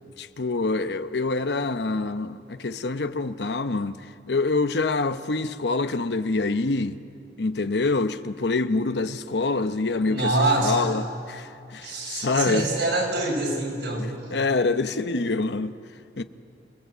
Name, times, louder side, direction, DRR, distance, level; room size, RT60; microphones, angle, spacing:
voice 1, 0.2-4.0 4.3-7.0 7.4-10.3 10.6-12.7 14.0-15.7 16.2-16.3, left 3 dB, 70° left, 0.9 m, -26 dB
voice 2, 10.1-10.9 11.8-14.1, right 2 dB, 80° right, 6.1 m, -25 dB
27.5 x 19.5 x 8.0 m
head